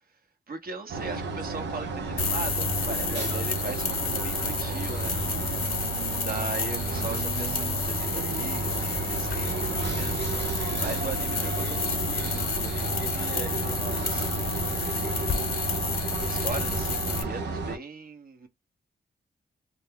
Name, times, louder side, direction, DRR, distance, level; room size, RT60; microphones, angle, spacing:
voice 1, 0.5-5.2 6.1-14.6 14.9-15.8 16.2-18.5, right 4 dB, 55° right, 1.0 m, -39 dB
sound 1, 0.9-17.8, right 4 dB, 85° right, 0.6 m, -32 dB
sound 2, 2.2-17.2, left 4 dB, 60° left, 0.8 m, -30 dB
2.4 x 2.2 x 3.6 m
cardioid pair, 50°, 18 cm